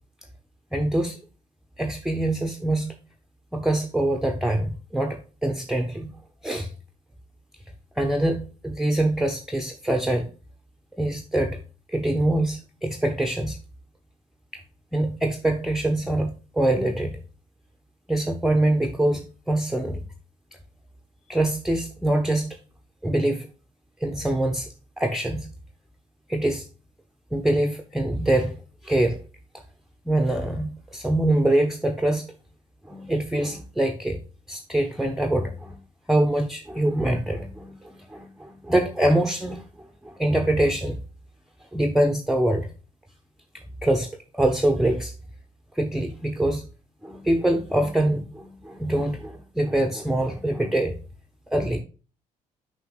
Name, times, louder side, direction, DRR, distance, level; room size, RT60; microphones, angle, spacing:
voice 1, 0.7-1.2 1.8-2.9 3.5-6.1 6.4-6.7 8.0-10.3 11.0-11.6 11.9-13.6 14.9-17.2 18.1-20.0 21.3-22.5 23.0-23.5 24.0-24.7 25.0-25.5 26.3-26.7 27.3-28.6 28.8-29.2 30.1-32.2 32.9-34.2 34.5-35.8 36.1-39.6 40.0-41.0 41.7-42.7 43.5-45.1 45.8-46.7 47.0-51.0 51.5-51.8, right 1 dB, ahead, 4 dB, 0.8 m, -24 dB
8.3 x 4.9 x 3.2 m, 0.34 s
hypercardioid pair, 45°, 20 cm